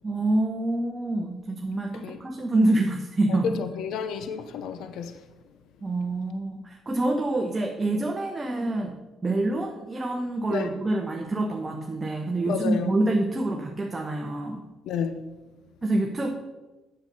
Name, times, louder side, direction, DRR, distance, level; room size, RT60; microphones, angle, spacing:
voice 1, 0.0-3.6 5.8-9.0 9.2-14.6 15.8-16.3, right 2 dB, 25° right, 1.0 m, -26 dB
voice 2, 3.3-5.2 10.5-10.7 12.5-12.9 14.8-15.2, left 6 dB, 85° left, 0.7 m, -30 dB
8.0 x 6.9 x 5.4 m
cardioid pair, 90°, 0 cm